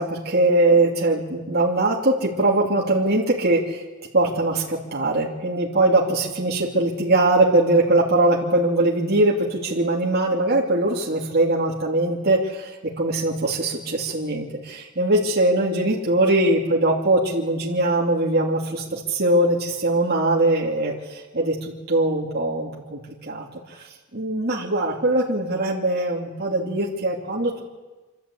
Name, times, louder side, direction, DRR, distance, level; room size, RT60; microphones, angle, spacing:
voice 1, 0.0-3.8 4.1-12.7 13.0-23.5 24.1-27.6, right 2 dB, 45° right, -3 dB, 2.8 m, -21 dB
26.5 x 12.5 x 8.5 m, 1.2 s
head